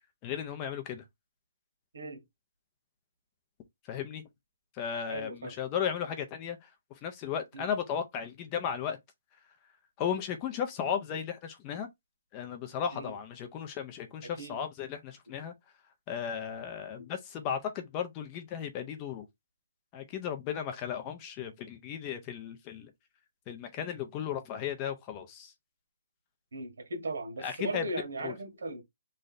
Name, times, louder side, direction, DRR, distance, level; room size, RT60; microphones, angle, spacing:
voice 1, 0.2-1.0 3.9-4.2 4.8-6.7 7.0-9.0 10.0-11.9 12.3-15.5 16.1-19.3 19.9-22.9 23.5-25.5 27.4-27.9 28.2-28.3, left 8 dB, 15° left, 0.5 m, -35 dB
voice 2, 5.1-5.6 7.5-7.7 12.9-13.1 14.4-14.6 17.0-17.1 26.5-28.8, right 2 dB, 85° right, 1.5 m, -38 dB
3.2 x 2.6 x 3.9 m
hypercardioid pair, 175°, 0 cm